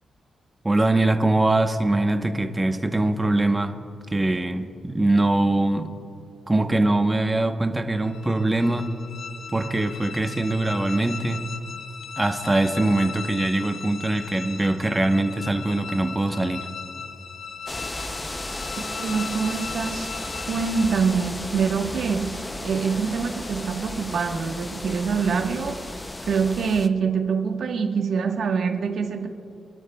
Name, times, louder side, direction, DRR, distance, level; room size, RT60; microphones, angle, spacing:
voice 1, 0.6-3.8 4.1-5.9 6.5-8.9 9.5-11.4 12.2-16.7, right 2 dB, 15° right, 7 dB, 1.0 m, -22 dB
sound 1, 7.9-21.3, left 6 dB, 65° left, 0.9 m, -38 dB
sound 2, 17.7-26.9, left 2 dB, 20° left, 0.6 m, -34 dB
voice 2, 18.8-20.1 20.5-25.9 26.2-29.3, right 5 dB, 70° right, 3 dB, 1.3 m, -25 dB
28.0 x 12.5 x 2.3 m, 2.8 s
cardioid pair, 90°, 0 cm